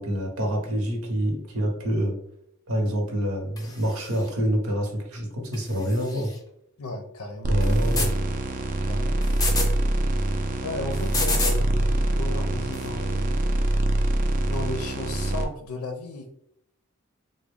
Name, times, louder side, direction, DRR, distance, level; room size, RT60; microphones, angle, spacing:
voice 1, 0.0-2.2 2.7-6.3 7.5-8.1, equal, 80° right, 2 dB, 1.0 m, -26 dB
sound 1, 3.6-4.3 5.5-6.4 7.6-8.1 9.2-9.7 10.9-11.6 12.7-12.9, left 3 dB, 15° left, 0.5 m, -30 dB
voice 2, 6.8-7.6 7.9-8.1 8.9-9.3 10.6-13.3 14.5-16.3, left 2 dB, 85° left, 5 dB, 0.5 m, -35 dB
sound 2, 7.4-15.4, right 1 dB, 40° right, 0.4 m, -24 dB
3.5 x 2.1 x 3.4 m, 0.71 s
head